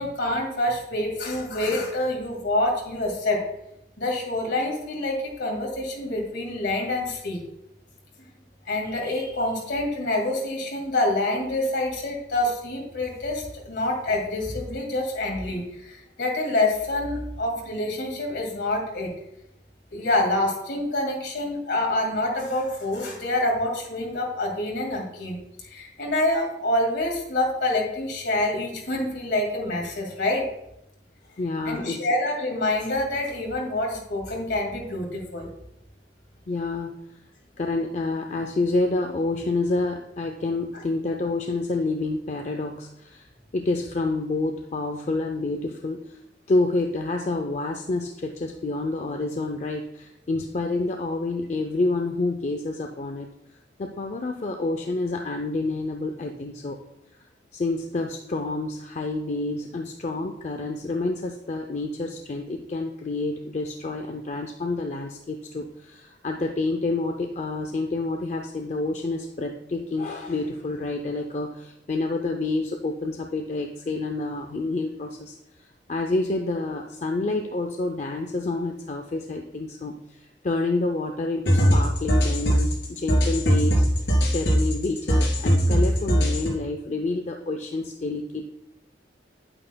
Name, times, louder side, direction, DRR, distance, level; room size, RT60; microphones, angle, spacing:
voice 1, 0.0-3.4 4.0-7.4 8.2-8.3 8.7-19.1 19.9-25.3 25.6-30.5 31.7-35.5, left 1 dB, 65° left, 0 dB, 2.0 m, -26 dB
voice 2, 31.4-32.1 36.5-36.9 37.6-43.3 43.5-46.2 46.5-53.3 53.8-56.8 57.5-75.4 75.9-83.8 84.2-88.5, left 2 dB, 40° left, 4 dB, 0.4 m, -28 dB
sound 1, 81.5-86.5, equal, 80° left, 2.6 m, -20 dB
8.9 x 8.6 x 2.2 m, 0.85 s
head